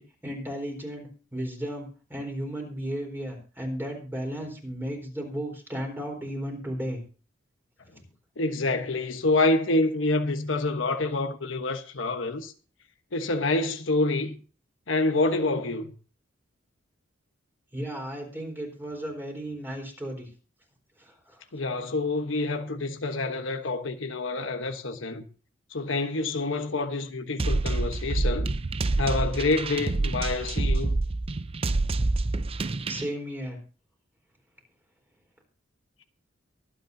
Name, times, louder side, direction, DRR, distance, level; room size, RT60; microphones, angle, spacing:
voice 1, 0.0-7.0 17.7-20.3 21.0-21.4 32.9-33.6, equal, 10° right, 4.1 m, -34 dB
voice 2, 8.4-12.5 13.1-14.3 14.9-15.9 21.5-25.3 25.7-28.5 29.0-31.0, left 2 dB, 80° left, 1.2 m, -27 dB
sound 1, 27.4-33.0, right 2 dB, 30° right, 0.5 m, -27 dB
23.5 x 8.6 x 2.7 m
head